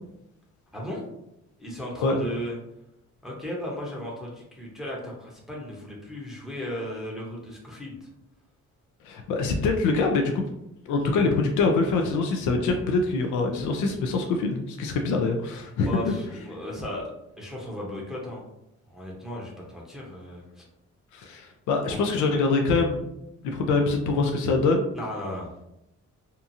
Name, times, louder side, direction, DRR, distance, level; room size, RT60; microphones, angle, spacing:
voice 1, 0.7-1.0 1.6-2.6 3.2-8.1 15.8-17.1 17.4-18.4 18.9-20.6 21.9-22.0 25.0-25.5, left 1 dB, ahead, -4 dB, 0.7 m, -35 dB
voice 2, 9.0-10.4 10.9-15.9 21.1-23.0 23.4-24.8, left 3 dB, 80° left, 3 dB, 0.5 m, -24 dB
2.8 x 2.4 x 2.5 m, 0.84 s
cardioid pair, 90°, 30 cm